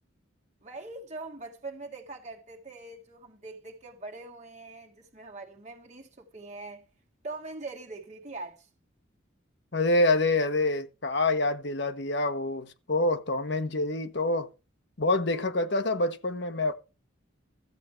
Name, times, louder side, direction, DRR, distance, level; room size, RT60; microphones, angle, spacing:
voice 1, 0.6-6.9 7.2-8.7, right 3 dB, 35° right, 2.1 m, -42 dB
voice 2, 9.7-14.5 15.0-16.7, left 2 dB, 55° left, 1.0 m, -26 dB
13.5 x 7.7 x 4.5 m
head